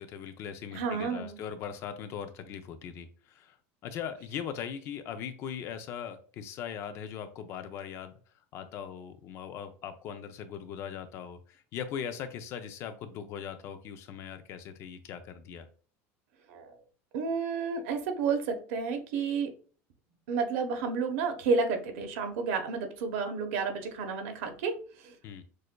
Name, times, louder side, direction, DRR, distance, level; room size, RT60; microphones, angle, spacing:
voice 1, 0.0-3.6 3.8-8.1 8.5-15.7 25.2-25.4, left 8 dB, 45° left, 9 dB, 0.5 m, -40 dB
voice 2, 0.7-1.4 16.5-16.7 17.1-19.5 20.3-25.1, right 5 dB, 85° right, 5 dB, 1.0 m, -31 dB
6.3 x 2.6 x 2.2 m, 0.40 s
cardioid pair, 160°, 7 cm